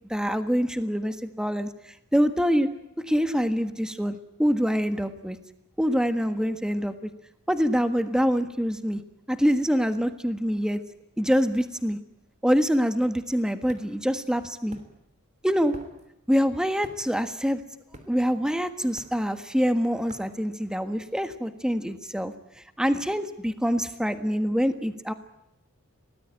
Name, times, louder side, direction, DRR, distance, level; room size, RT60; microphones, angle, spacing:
voice 1, 0.1-2.7 3.1-5.4 5.8-7.1 7.5-9.0 9.3-10.8 11.2-12.0 12.4-14.8 15.4-15.7 16.3-17.6 18.1-22.3 22.8-25.1, equal, 5° right, 8 dB, 1.5 m, -25 dB
sound 1, 13.3-21.2, right 1 dB, 35° right, 3.0 m, -51 dB
24.5 x 18.5 x 9.0 m, 0.83 s
head